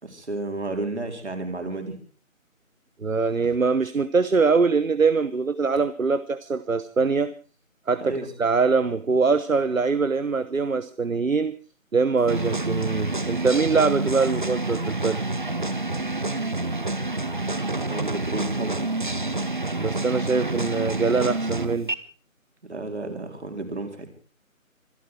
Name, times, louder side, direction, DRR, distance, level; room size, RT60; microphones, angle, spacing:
voice 1, 0.0-2.0 8.0-8.3 17.8-19.0 22.7-24.1, right 2 dB, 55° right, 5 dB, 4.0 m, -32 dB
voice 2, 3.0-7.3 7.9-11.6 11.9-15.2 19.8-21.9, right 4 dB, 70° right, 13 dB, 1.1 m, -23 dB
sound 1, 12.2-21.9, right 2 dB, 35° right, 1.0 m, -28 dB
25.5 x 11.5 x 4.7 m, 0.39 s
figure-of-eight pair, 165°, 41 cm